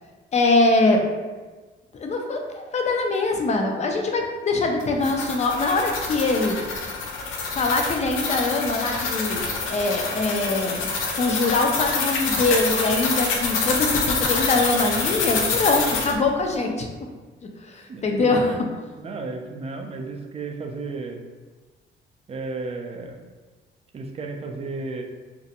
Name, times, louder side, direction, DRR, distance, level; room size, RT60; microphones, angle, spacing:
voice 1, 0.3-1.0 1.9-6.5 7.6-9.4 9.7-10.9 11.1-16.9 17.7-18.5, left 2 dB, 35° left, 2 dB, 0.4 m, -23 dB
sound 1, 4.8-16.2, left 4 dB, 90° left, 0.5 m, -26 dB
voice 2, 17.9-18.6 18.9-21.2 22.3-23.2 23.9-25.0, right 3 dB, 30° right, 3 dB, 0.4 m, -33 dB
2.5 x 2.1 x 2.7 m, 1.3 s
cardioid pair, 90°, 20 cm